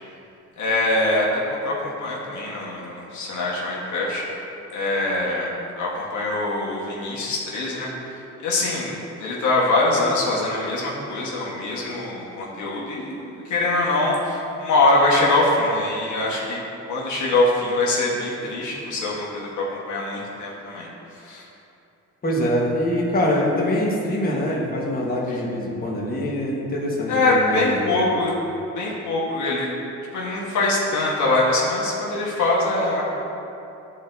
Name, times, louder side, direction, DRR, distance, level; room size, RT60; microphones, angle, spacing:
voice 1, 0.6-4.2 4.7-5.5 5.8-7.9 8.4-16.6 16.9-20.9 21.1-21.5 25.3-25.4 27.1-28.3 28.7-29.7 30.1-33.0, left 2 dB, 75° left, -4 dB, 1.4 m, -23 dB
voice 2, 22.2-28.1, left 1 dB, 30° left, -4 dB, 1.4 m, -24 dB
11.0 x 4.3 x 2.7 m, 2.8 s
cardioid pair, 90°, 30 cm